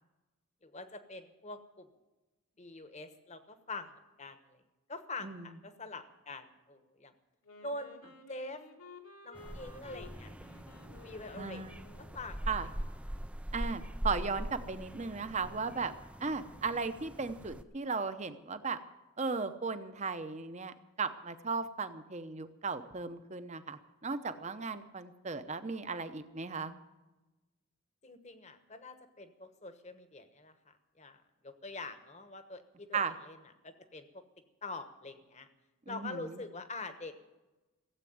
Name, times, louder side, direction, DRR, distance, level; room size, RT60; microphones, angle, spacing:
voice 1, 0.6-1.9 2.6-4.6 4.9-7.1 7.6-8.6 9.2-10.3 11.0-11.6 12.0-12.7 28.0-33.4 33.6-34.2 34.6-35.5 35.9-37.1, left 2 dB, 30° left, 9 dB, 1.1 m, -45 dB
Wind instrument woodwind instrument, 7.4-12.5, left 3 dB, 80° left, 2.3 m, -54 dB
sound 1, 9.4-17.6, equal, 5° right, 0.4 m, -42 dB
voice 2, 11.4-11.8 12.5-12.7 13.5-15.9 16.2-18.8 19.2-26.7 32.9-33.1 35.9-36.4, right 4 dB, 30° right, 10 dB, 0.8 m, -36 dB
16.5 x 8.3 x 9.4 m, 1.1 s
head